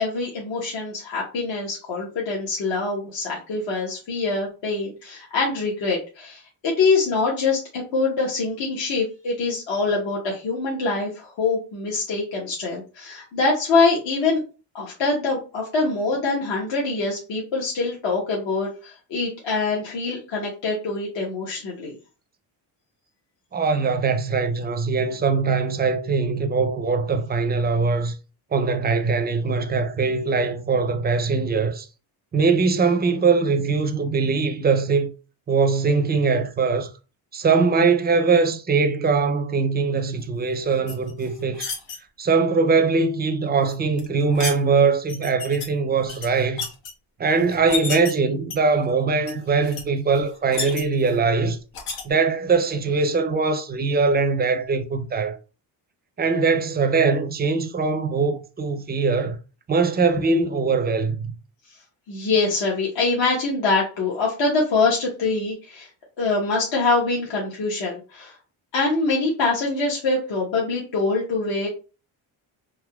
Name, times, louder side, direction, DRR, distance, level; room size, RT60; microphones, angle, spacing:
voice 1, 0.0-14.4 14.7-21.9 61.7-61.8 62.1-65.9 66.2-68.4 68.7-71.7, left 3 dB, 65° left, 1.1 m, -24 dB
voice 2, 23.5-28.1 28.5-31.9 32.3-35.1 35.5-36.9 37.3-41.7 42.2-46.6 47.2-51.6 52.0-55.4 56.2-59.4 59.7-61.3, right 4 dB, 20° right, 0.4 m, -21 dB
sound 1, 40.9-42.0 43.7-44.6 45.1-45.7 46.0-46.9 47.5-48.1 48.5-48.9 49.3-49.4 49.6-49.8 50.2-51.2 51.7-52.0, left 5 dB, 85° left, 1.0 m, -31 dB
3.6 x 2.7 x 2.3 m
cardioid pair, 85°, 49 cm